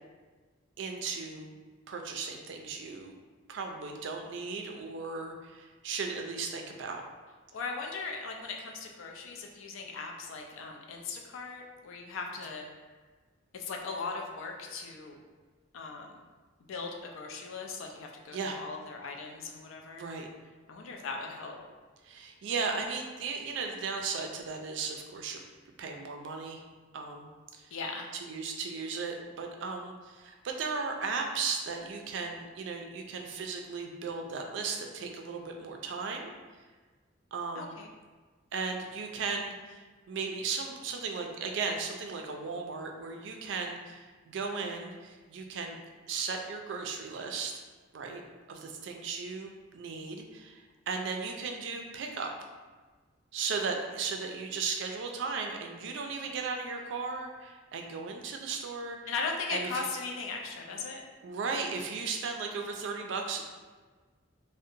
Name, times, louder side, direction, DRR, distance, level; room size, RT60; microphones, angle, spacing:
voice 1, 0.8-1.6 1.9-3.1 3.5-7.0 18.3-18.6 19.9-20.3 22.0-25.4 25.8-26.6 26.9-27.7 28.1-36.3 37.3-37.8 38.5-45.8 46.1-47.6 47.9-48.2 48.5-52.3 53.3-59.1 59.5-59.9 61.2-63.4, right 4 dB, 65° right, 3 dB, 0.3 m, -36 dB
voice 2, 7.5-12.7 13.6-15.2 15.7-16.1 16.7-20.1 20.7-21.6 27.7-28.1 37.6-37.9 59.1-61.0, left 4 dB, 80° left, 2 dB, 0.4 m, -38 dB
2.7 x 2.1 x 2.5 m, 1.4 s
head